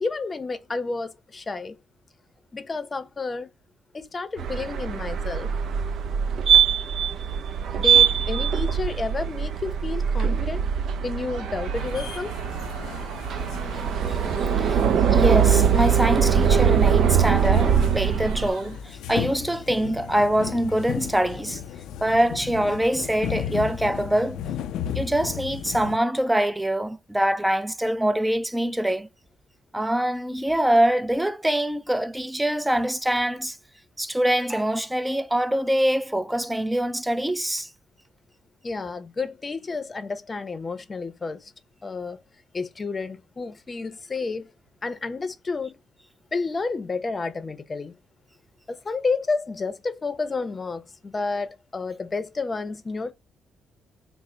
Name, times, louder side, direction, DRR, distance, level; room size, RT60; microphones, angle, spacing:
voice 1, 0.0-1.7 2.5-3.5 3.9-5.5 7.8-10.7 11.0-12.3 38.6-41.5 41.8-42.2 42.5-44.5 44.8-45.8 46.3-47.9 48.7-53.1, left 3 dB, 30° left, 0.6 m, -30 dB
sound 1, 4.4-18.5, right 7 dB, 65° right, 0.4 m, -22 dB
Crowd, 11.2-19.0, right 5 dB, 85° right, 0.9 m, -42 dB
sound 2, 11.7-26.0, left 9 dB, 85° left, 0.4 m, -35 dB
voice 2, 14.1-14.8 15.1-21.6 22.0-24.4 24.9-29.1 29.7-33.6 34.0-37.7, right 1 dB, 5° right, 0.4 m, -24 dB
3.7 x 2.0 x 4.3 m
cardioid pair, 90°, 0 cm